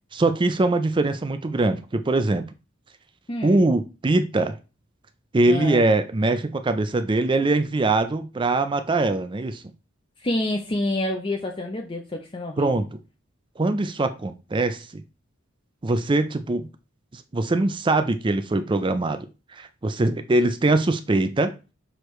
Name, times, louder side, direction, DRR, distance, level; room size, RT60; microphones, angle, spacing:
voice 1, 0.1-2.5 3.4-4.6 5.3-9.6 12.6-13.0 13.6-15.0 15.8-16.7 17.1-19.3 19.6-21.5, right 2 dB, 25° right, 0.4 m, -22 dB
voice 2, 3.3-3.6 5.5-5.8 10.2-12.8, left 1 dB, 25° left, 0.6 m, -28 dB
6.3 x 4.9 x 3.1 m
head